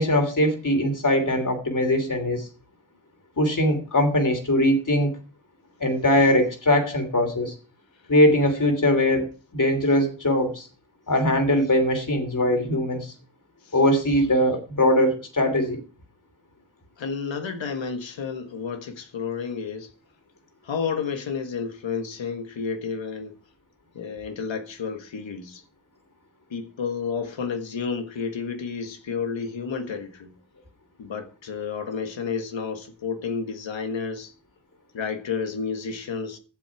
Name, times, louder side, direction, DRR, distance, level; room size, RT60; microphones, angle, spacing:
voice 1, 0.0-2.5 3.4-5.1 5.8-7.5 8.1-10.7 11.1-13.1 13.7-15.8, left 1 dB, 45° left, 3.1 m, -21 dB
voice 2, 17.0-19.9 20.6-23.4 23.9-25.6 26.5-30.3 31.0-34.3 34.9-36.4, left 5 dB, 90° left, 1.6 m, -31 dB
11.5 x 7.7 x 4.7 m
cardioid pair, 50°, 44 cm